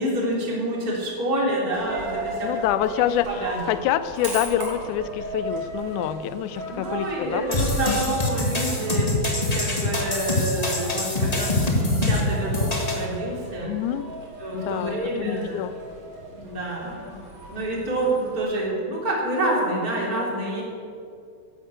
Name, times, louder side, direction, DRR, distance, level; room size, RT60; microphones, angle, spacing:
voice 1, 0.0-2.5 3.3-3.8 6.7-9.1 9.5-13.7 14.4-15.7 16.3-17.2 17.5-20.6, right 1 dB, 25° right, -4 dB, 3.7 m, -27 dB
Coin (dropping), 1.7-18.4, right 1 dB, 55° right, 4.6 m, -37 dB
voice 2, 2.4-7.6 13.6-14.1 14.5-15.7, left 11 dB, 80° left, 13 dB, 1.8 m, -26 dB
sound 1, 7.5-13.0, left 2 dB, 20° left, 0.9 m, -24 dB
13.5 x 11.0 x 8.2 m, 2.4 s
omnidirectional pair, 4.2 m